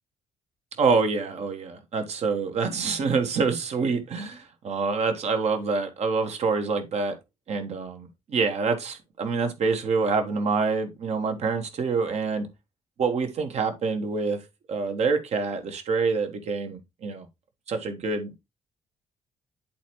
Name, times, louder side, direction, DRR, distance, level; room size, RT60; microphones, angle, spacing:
voice 1, 0.8-7.2 7.5-12.5 13.0-14.4 14.7-17.3 17.7-18.4, right 4 dB, 50° right, 1.4 m, -26 dB
10.5 x 4.2 x 2.9 m
figure-of-eight pair, 40°, 14 cm